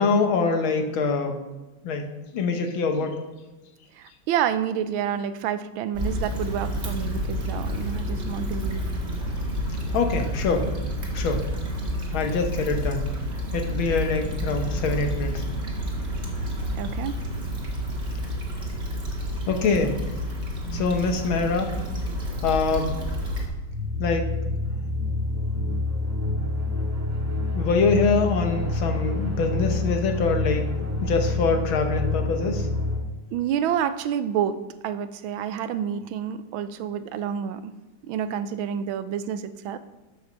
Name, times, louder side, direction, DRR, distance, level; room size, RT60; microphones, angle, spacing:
voice 1, 0.0-1.4 1.8-2.1 2.3-3.2 9.9-10.7 11.1-11.4 12.1-13.1 13.5-15.4 19.5-20.0 20.7-21.7 22.4-22.9 24.0-24.3 27.5-30.7 31.0-32.7, left 4 dB, 80° left, 4 dB, 1.9 m, -24 dB
voice 2, 3.9-8.8 16.8-17.2 33.3-37.7 38.0-39.8, right 9 dB, 90° right, 12 dB, 1.4 m, -29 dB
Stream / Traffic noise roadway noise / Trickle dribble, 5.9-23.5, equal, 35° right, 1.9 m, -29 dB
sound 1, 23.7-33.0, left 2 dB, 10° right, 1.2 m, -27 dB
7.9 x 7.0 x 6.4 m, 1.1 s
omnidirectional pair, 2.2 m